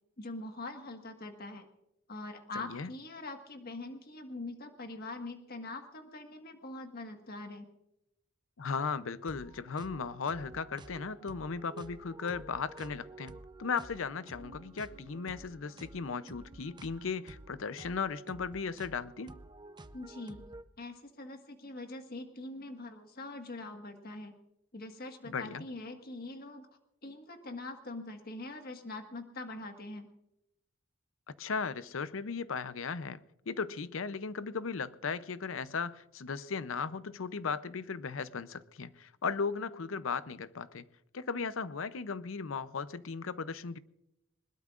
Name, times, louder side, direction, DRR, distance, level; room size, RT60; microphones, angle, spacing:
voice 1, 0.2-1.7 2.1-7.7 19.9-20.4 20.8-24.3 24.7-26.7 27.0-30.1, left 2 dB, 50° left, 1.6 m, -43 dB
voice 2, 2.5-2.9 8.6-19.3 25.2-25.7 31.4-33.2 33.5-40.9 41.1-43.8, left 5 dB, 75° left, 0.6 m, -36 dB
sound 1, 9.2-20.6, right 2 dB, 20° right, 0.6 m, -51 dB
21.0 x 20.5 x 2.5 m
head